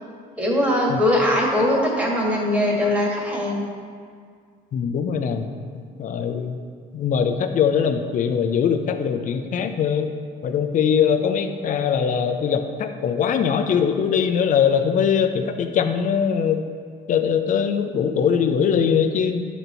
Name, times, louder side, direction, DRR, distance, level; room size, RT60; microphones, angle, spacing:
voice 1, 0.4-3.7, left 1 dB, 10° right, -4 dB, 1.9 m, -21 dB
voice 2, 4.7-5.5 5.7-6.6 6.9-10.1 10.4-16.6 17.1-19.5, left 7 dB, 50° left, 7 dB, 0.6 m, -21 dB
10.5 x 4.1 x 4.4 m, 2.1 s
cardioid pair, 110°, 17 cm